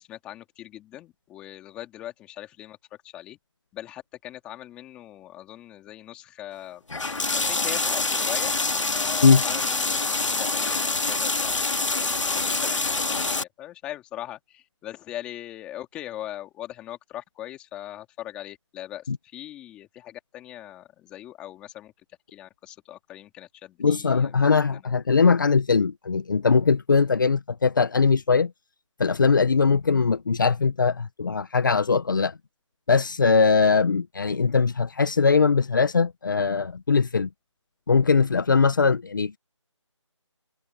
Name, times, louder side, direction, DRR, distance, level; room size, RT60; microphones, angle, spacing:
voice 1, 0.0-2.8 3.0-3.4 3.7-6.8 7.2-8.5 8.9-21.9 22.3-24.3 24.6-24.9, left 13 dB, 5° left, 2.5 m, -40 dB
sound 1, 6.9-13.4, left 3 dB, 75° left, 2.4 m, -26 dB
voice 2, 23.8-28.5 29.0-32.3 32.9-37.3 37.9-39.4, left 5 dB, 40° left, 1.4 m, -21 dB
figure-of-eight pair, 170°, 16 cm